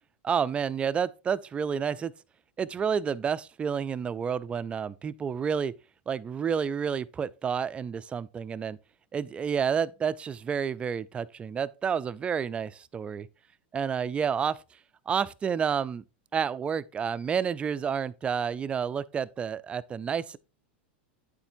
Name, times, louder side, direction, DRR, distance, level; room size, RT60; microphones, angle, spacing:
voice 1, 0.2-2.1 2.6-5.7 6.1-8.8 9.1-13.3 13.7-14.6 15.1-16.0 16.3-20.4, right 7 dB, 20° right, 0.3 m, -30 dB
8.9 x 7.1 x 2.6 m
supercardioid pair, 135°, 6 cm